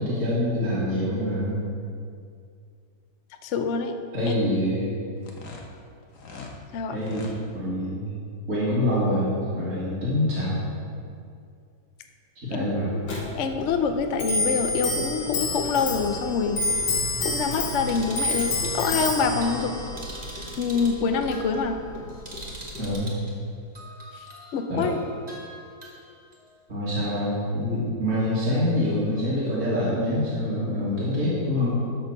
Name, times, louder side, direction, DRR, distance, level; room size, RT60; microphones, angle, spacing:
voice 1, 0.0-1.6 4.1-4.9 6.9-7.3 7.5-8.1 8.5-10.5 12.4-12.9 22.8-23.1 24.7-24.9 26.7-31.8, left 1 dB, 45° right, -9 dB, 2.1 m, -25 dB
voice 2, 3.4-3.9 4.3-4.4 6.7-6.9 12.5-12.6 13.1-16.6 17.2-19.8 20.6-21.8 24.2-24.3 24.5-25.0, left 5 dB, 70° left, 6 dB, 0.7 m, -26 dB
sound 1, 5.2-6.6 6.9-7.4, left 3 dB, 50° left, 1.3 m, -41 dB
Clock, 13.0-22.9, left 2 dB, 90° left, 2.1 m, -29 dB
sound 2, 17.8-23.3 23.7-26.4, right 1 dB, 25° right, 1.6 m, -43 dB
12.0 x 4.4 x 6.7 m, 2.3 s
omnidirectional pair, 2.0 m